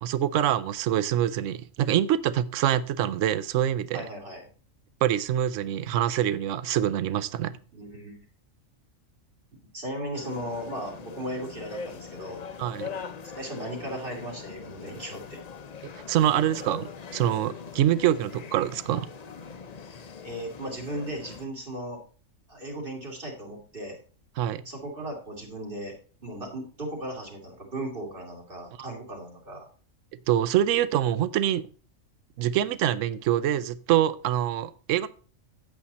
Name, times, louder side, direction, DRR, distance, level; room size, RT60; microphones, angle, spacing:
voice 1, 0.0-4.0 5.0-7.6 12.6-12.9 16.1-19.1 24.4-24.6 30.3-31.7 32.4-35.1, right 11 dB, 75° right, 0.9 m, -25 dB
voice 2, 3.9-4.5 7.7-8.2 9.7-12.4 13.3-15.4 20.2-22.0 22.5-24.0 24.6-25.9 26.2-29.7, right 1 dB, 45° right, 2.9 m, -36 dB
sound 1, 10.1-21.5, left 5 dB, 40° left, 0.6 m, -42 dB
8.5 x 8.2 x 4.1 m
omnidirectional pair, 1.3 m